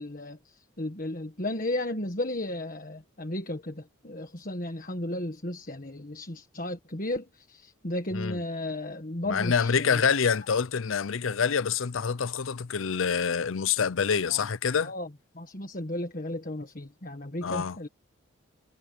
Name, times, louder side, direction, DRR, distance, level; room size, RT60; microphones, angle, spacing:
voice 1, 0.0-10.1 14.3-14.5 14.8-15.1 15.3-17.9, left 1 dB, 40° left, 1.6 m, -34 dB
voice 2, 8.1-8.4 9.3-14.9 17.4-17.8, left 6 dB, 75° left, 0.6 m, -26 dB
head